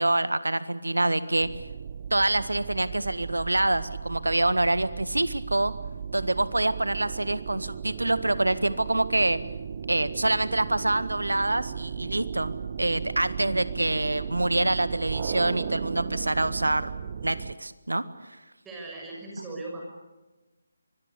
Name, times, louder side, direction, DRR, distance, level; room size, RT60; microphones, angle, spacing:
voice 1, 0.0-1.5 2.1-5.7 6.1-9.4 9.9-16.9 17.2-18.4, right 2 dB, 80° right, 14 dB, 1.6 m, -26 dB
sound 1, 1.4-17.6, right 7 dB, 40° right, 1.0 m, -36 dB
voice 2, 18.6-19.8, right 2 dB, 10° right, -2 dB, 6.3 m, -38 dB
24.5 x 20.0 x 8.3 m, 1.1 s
figure-of-eight pair, 150°, 0 cm